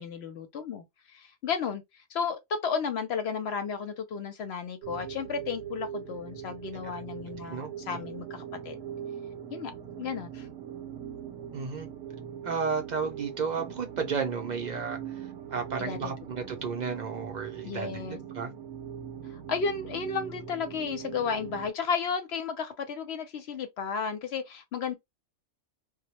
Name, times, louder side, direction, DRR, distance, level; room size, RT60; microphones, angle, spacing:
voice 1, 0.0-1.8 2.1-8.8 9.5-9.7 10.0-10.5 15.8-16.1 17.6-18.2 19.3-25.0, left 6 dB, 65° left, 0.9 m, -33 dB
sound 1, 4.8-21.7, right 9 dB, 80° right, 1.0 m, -41 dB
voice 2, 11.5-11.9 12.4-18.5, right 5 dB, 50° right, 0.5 m, -33 dB
2.2 x 2.0 x 2.8 m
omnidirectional pair, 1.2 m